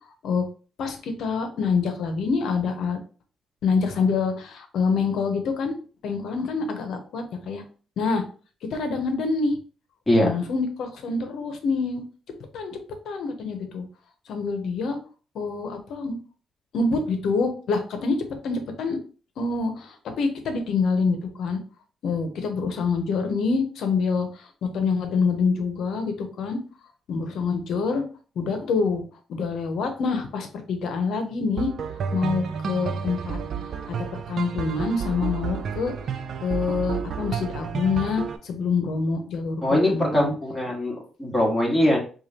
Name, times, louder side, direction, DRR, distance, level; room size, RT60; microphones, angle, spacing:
voice 1, 0.8-3.0 3.6-5.8 6.0-7.6 8.0-8.2 8.7-9.6 10.2-12.0 12.5-12.8 13.0-13.8 14.3-15.0 15.3-16.2 16.7-18.2 18.4-19.0 19.4-21.6 22.0-24.5 24.7-26.6 27.1-28.0 28.4-31.7 32.1-33.4 33.9-35.9 36.4-40.3, left 4 dB, 75° left, 6 dB, 0.9 m, -26 dB
sound 1, 31.6-38.4, right 6 dB, 60° right, 0.5 m, -31 dB
voice 2, 39.6-42.0, left 1 dB, 10° left, -3 dB, 2.0 m, -22 dB
4.8 x 2.5 x 2.9 m, 0.38 s
cardioid pair, 90°, 0 cm